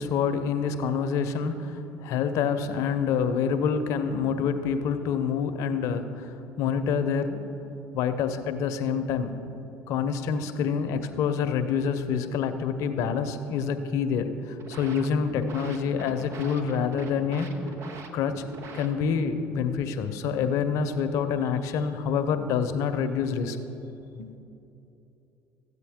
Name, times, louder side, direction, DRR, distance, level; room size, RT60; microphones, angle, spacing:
voice 1, 0.0-7.4 7.9-9.3 9.9-17.5 18.1-18.4 18.7-23.6 24.2-24.3, left 6 dB, 70° left, 9 dB, 0.7 m, -27 dB
sound 1, 14.4-19.3, right 3 dB, 55° right, 0.9 m, -43 dB
14.0 x 8.2 x 3.5 m, 2.9 s
supercardioid pair, 75°, 5 cm